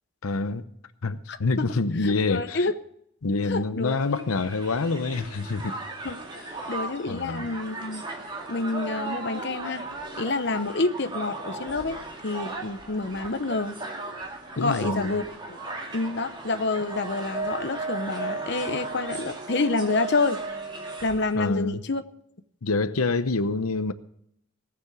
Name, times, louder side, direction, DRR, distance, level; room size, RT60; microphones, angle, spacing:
voice 1, 0.2-0.6 1.0-2.7 3.2-5.8 6.6-6.7 7.1-7.5 14.6-15.1 21.4-21.8 22.6-23.9, left 3 dB, 90° left, 0.8 m, -26 dB
voice 2, 1.3-1.7 2.0-2.7 3.4-4.2 6.0-6.2 6.5-8.0 8.5-9.9 10.2-12.0 12.2-13.8 14.6-15.6 15.9-20.4 21.0-22.0, left 3 dB, 55° left, 0.9 m, -28 dB
Crowd, 4.0-21.3, right 2 dB, 20° right, 2.3 m, -36 dB
18.0 x 7.2 x 6.5 m
head